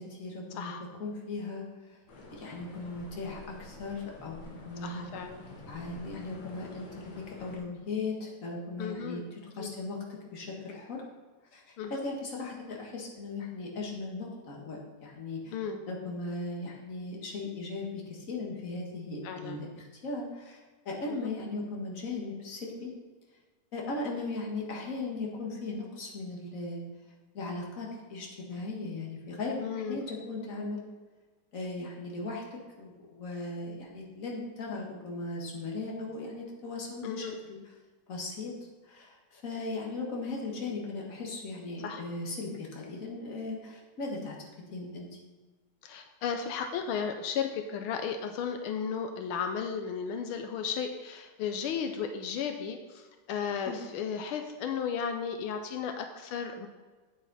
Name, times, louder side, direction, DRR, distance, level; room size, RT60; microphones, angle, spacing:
voice 1, 0.0-0.7 1.0-2.0 2.3-5.1 5.7-10.0 10.3-11.0 11.5-15.5 15.9-22.9 23.7-26.8 27.3-30.8 31.5-32.4 32.8-37.3 38.1-38.5 38.9-44.4 44.7-45.1 53.7-53.8, left 3 dB, 40° left, -1 dB, 1.9 m, -38 dB
sound 1, 2.1-7.6, left 2 dB, 65° left, 2.2 m, -49 dB
voice 2, 4.8-5.4 8.8-9.2 9.6-9.7 11.8-12.0 15.5-15.8 19.2-19.6 21.1-21.3 29.6-30.1 37.0-37.4 41.8-42.0 45.8-56.7, left 7 dB, 85° left, 6 dB, 1.5 m, -34 dB
8.8 x 8.4 x 4.1 m, 1.3 s
omnidirectional pair, 2.3 m